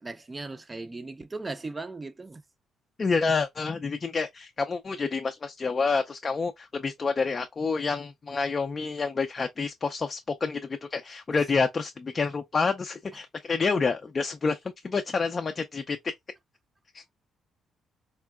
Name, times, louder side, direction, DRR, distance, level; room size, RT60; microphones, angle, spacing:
voice 1, 0.0-2.4, right 3 dB, 25° right, 0.5 m, -37 dB
voice 2, 3.0-16.1 16.9-17.0, left 4 dB, 35° left, 0.4 m, -28 dB
3.6 x 2.2 x 2.2 m
cardioid pair, 90°, 0 cm